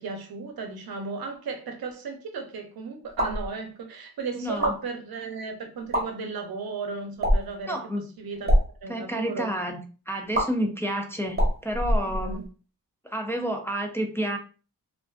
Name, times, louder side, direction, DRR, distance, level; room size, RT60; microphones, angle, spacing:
voice 1, 0.0-9.5 10.6-10.8 12.1-12.4, right 4 dB, 85° right, 4 dB, 0.6 m, -35 dB
sound 1, 3.1-3.5 4.5-4.8 5.8-6.0 7.2-7.6 8.3-8.6 10.3-10.4 11.3-12.5, equal, 35° right, 1.0 m, -24 dB
voice 2, 4.3-4.8 7.7-8.0 8.9-12.4 13.0-14.4, equal, 5° left, 3 dB, 0.3 m, -30 dB
2.4 x 2.2 x 2.3 m, 0.37 s
wide cardioid pair, 80°, 35 cm